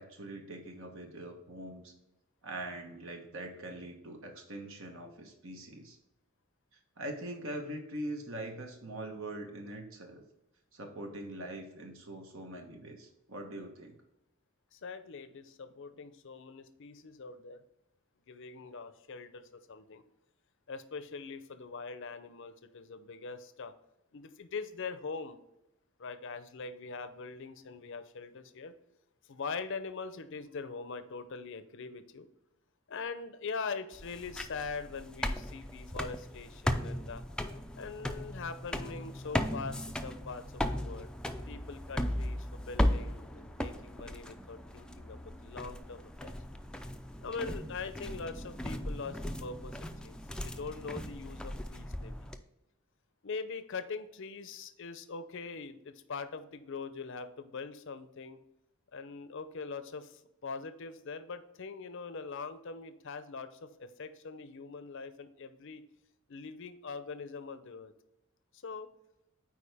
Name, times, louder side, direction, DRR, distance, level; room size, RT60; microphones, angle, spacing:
voice 1, 0.0-1.9 2.4-6.0 7.0-10.2 10.7-13.9, right 1 dB, 65° right, 3 dB, 1.2 m, -42 dB
voice 2, 14.7-17.6 18.3-20.0 20.7-23.7 24.1-25.4 26.0-28.7 29.3-32.3 32.9-37.2 37.7-41.1 41.5-46.3 47.2-52.3 53.2-58.4 58.9-65.8 66.3-67.9 68.5-68.9, left 4 dB, 60° left, 11 dB, 0.6 m, -42 dB
sound 1, 33.9-52.4, left 1 dB, 5° left, 0.4 m, -37 dB
8.5 x 4.6 x 3.5 m, 0.88 s
head